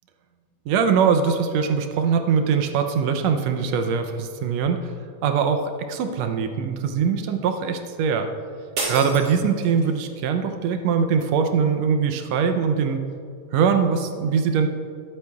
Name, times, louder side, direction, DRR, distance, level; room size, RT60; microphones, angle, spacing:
voice 1, 0.7-4.9 5.2-8.3 8.8-13.0 13.5-14.7, right 6 dB, 85° right, 6 dB, 1.5 m, -22 dB
sound 1, 8.8-10.0, right 2 dB, 55° right, 3.5 m, -30 dB
22.0 x 8.4 x 2.4 m, 2.3 s
omnidirectional pair, 3.7 m